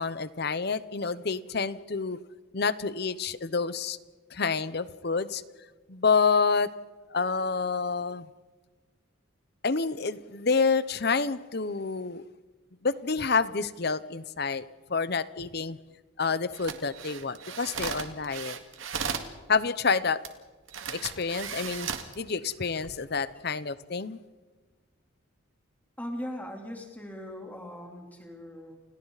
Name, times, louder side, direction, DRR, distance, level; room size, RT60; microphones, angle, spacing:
voice 1, 0.0-2.2 2.5-4.0 4.3-5.4 5.9-6.7 7.1-8.3 9.6-12.2 12.8-14.6 14.9-15.8 16.2-18.6 19.5-20.2 20.9-21.9 22.2-24.2, left 4 dB, 50° left, 15 dB, 0.8 m, -28 dB
sound 1, 16.5-19.3 20.2-20.3 20.7-22.1 22.7-22.9, right 6 dB, 70° right, 2.0 m, -36 dB
voice 2, 26.0-28.8, equal, 10° left, 0 dB, 3.5 m, -40 dB
30.0 x 29.0 x 4.1 m, 1.3 s
head